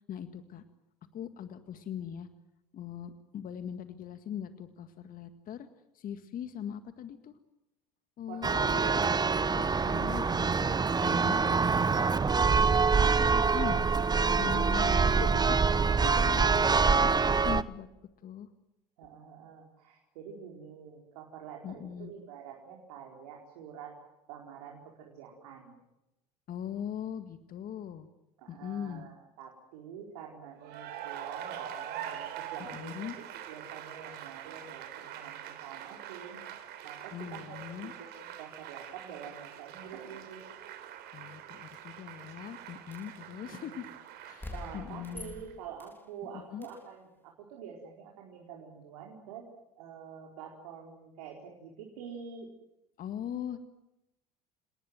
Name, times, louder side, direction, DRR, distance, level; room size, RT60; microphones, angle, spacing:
voice 1, 0.1-0.6 1.1-2.3 2.7-5.7 5.9-7.4 8.2-9.1 9.6-12.0 13.0-13.9 14.4-16.7 17.0-17.9 18.2-18.5 21.6-22.1 26.5-28.1 28.5-29.1 32.6-33.2 37.1-37.9 41.1-43.9 44.2-45.3 46.2-46.7 53.0-53.6, left 9 dB, 45° left, 9 dB, 1.9 m, -41 dB
voice 2, 8.3-9.0 19.0-24.0 24.3-25.8 28.4-36.4 36.8-37.7 38.0-40.4 43.4-43.7 44.5-49.4 49.8-52.5, right 7 dB, 75° right, 1 dB, 4.6 m, -47 dB
Church bell, 8.4-17.6, right 5 dB, 20° right, 1.1 m, -25 dB
Cheering / Applause, 30.6-45.5, right 10 dB, 60° right, 3.7 m, -44 dB
sound 1, 42.9-43.2 44.4-46.0 46.6-46.9, left 2 dB, 10° left, 3.5 m, -45 dB
29.0 x 19.0 x 9.2 m, 0.94 s
hypercardioid pair, 70°, 19 cm